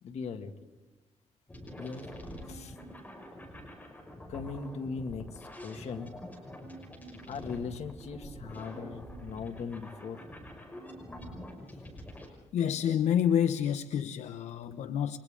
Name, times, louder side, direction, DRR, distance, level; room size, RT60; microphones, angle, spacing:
voice 1, 0.0-0.5 1.7-2.0 2.5-2.8 4.3-6.1 7.3-10.3, left 5 dB, 70° left, 5 dB, 2.2 m, -39 dB
sound 1, 1.5-12.3, equal, 15° left, 5.8 m, -46 dB
voice 2, 12.5-15.2, left 9 dB, 90° left, 10 dB, 0.8 m, -28 dB
29.5 x 24.5 x 3.8 m, 1.2 s
cardioid pair, 120°, 12 cm